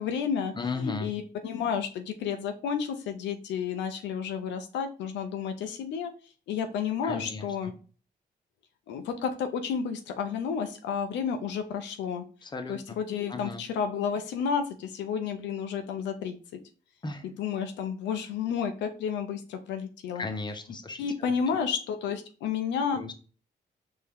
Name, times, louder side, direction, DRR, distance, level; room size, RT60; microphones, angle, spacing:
voice 1, 0.0-6.1 6.5-7.7 8.9-12.2 12.7-16.4 17.2-20.3 21.0-23.0, left 7 dB, 90° left, 6 dB, 0.5 m, -31 dB
voice 2, 0.5-1.1 7.0-7.7 12.4-13.0 13.3-13.6 17.0-17.3 20.1-21.6 22.9-23.1, left 3 dB, 25° left, 6 dB, 0.9 m, -36 dB
4.5 x 2.7 x 3.5 m, 0.38 s
supercardioid pair, 55°, 18 cm